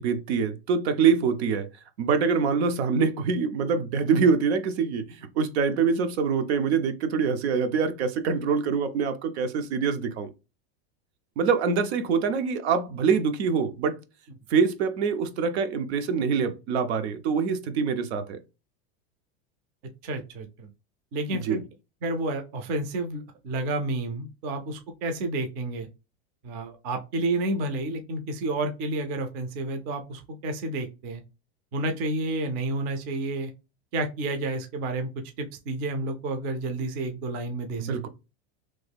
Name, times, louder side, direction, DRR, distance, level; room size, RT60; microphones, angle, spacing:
voice 1, 0.0-1.7 2.0-5.1 5.4-10.3 11.4-14.0 14.5-18.4 21.3-21.6 37.8-38.1, right 5 dB, 75° right, 0.7 m, -25 dB
voice 2, 20.0-20.7 21.1-21.6 22.0-25.9 26.4-31.2 31.7-33.5 33.9-35.1 35.4-37.9, right 2 dB, 30° right, 0.4 m, -30 dB
3.1 x 2.3 x 3.4 m
supercardioid pair, 165°, 33 cm